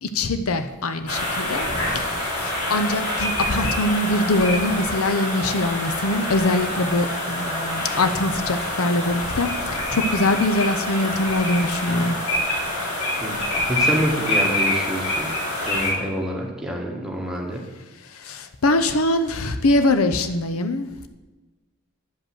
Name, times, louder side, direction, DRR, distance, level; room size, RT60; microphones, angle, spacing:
voice 1, 0.0-12.2 18.0-21.1, left 2 dB, 75° left, 8 dB, 0.7 m, -23 dB
sound 1, 1.1-15.9, left 1 dB, 90° left, 4.0 m, -26 dB
voice 2, 13.7-15.3 15.6-17.6, right 1 dB, 5° right, -2 dB, 1.7 m, -27 dB
10.5 x 5.4 x 7.8 m, 1.2 s
head